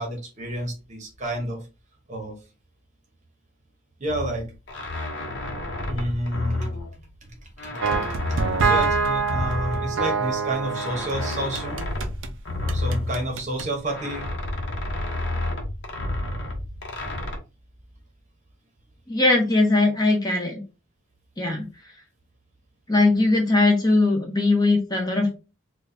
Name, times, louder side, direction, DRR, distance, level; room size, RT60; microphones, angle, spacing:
voice 1, 0.0-1.6 2.1-2.4 4.0-4.5 5.9-6.7 7.2-7.3 7.6-7.9 8.3-8.4 8.7-11.8 12.7-14.3, right 1 dB, 35° right, 2 dB, 0.9 m, -30 dB
sound 1, 4.1-7.3 7.6-10.2 10.6-13.6 13.9-17.4, left 2 dB, 55° left, 0.8 m, -30 dB
Vivace con screamo - Electric Solo, 7.8-12.3 12.7-13.7, right 4 dB, 65° right, 0.5 m, -26 dB
voice 2, 19.1-20.6 21.4-21.7 22.9-25.3, left 2 dB, 20° left, 1 dB, 0.8 m, -20 dB
4.5 x 2.2 x 2.6 m, 0.30 s
head